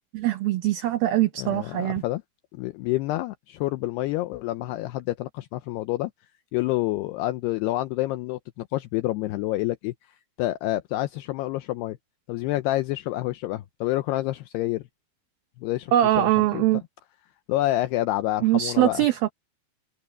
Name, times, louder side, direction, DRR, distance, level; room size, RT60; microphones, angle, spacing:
voice 1, 0.1-2.0 15.9-16.8 18.4-19.3, right 13 dB, 85° right, 2.1 m, -22 dB
voice 2, 1.4-2.2 2.6-6.1 6.5-9.9 10.4-12.0 12.3-14.8 15.6-15.9 16.2-16.6 17.5-19.0, left 16 dB, 85° left, 2.3 m, -28 dB
omnidirectional pair, 5.5 m